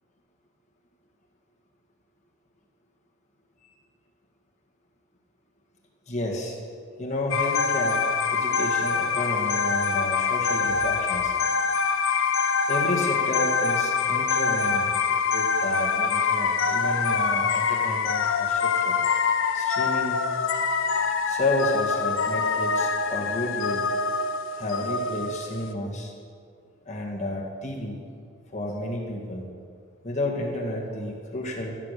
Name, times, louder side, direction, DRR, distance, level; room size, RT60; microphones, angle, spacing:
voice 1, 6.1-6.6 7.0-8.0 8.3-11.3 12.7-15.0 15.2-19.0 19.5-20.3 21.3-23.9 24.5-26.1 26.9-28.1 28.5-29.5 30.0-31.8, left 1 dB, 30° left, -2 dB, 1.8 m, -31 dB
sound 1, 7.3-25.7, left 5 dB, 60° left, 0.6 m, -25 dB
14.5 x 6.8 x 6.7 m, 2.2 s
head